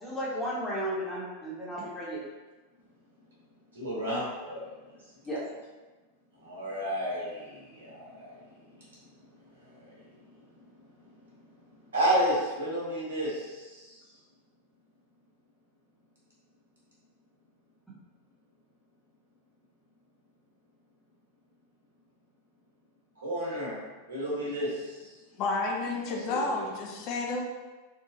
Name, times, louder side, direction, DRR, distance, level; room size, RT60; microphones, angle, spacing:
voice 1, 0.0-2.2 5.2-5.5, equal, 5° left, -7 dB, 0.9 m, -34 dB
voice 2, 3.7-4.7 6.4-8.3 9.7-9.9 11.9-13.9 23.2-23.8 24.1-25.1 26.2-26.6, right 1 dB, 70° right, -6 dB, 1.3 m, -31 dB
voice 3, 25.3-27.4, left 3 dB, 40° left, 0 dB, 0.5 m, -31 dB
3.6 x 2.3 x 2.8 m, 1.2 s
figure-of-eight pair, 90°, 0 cm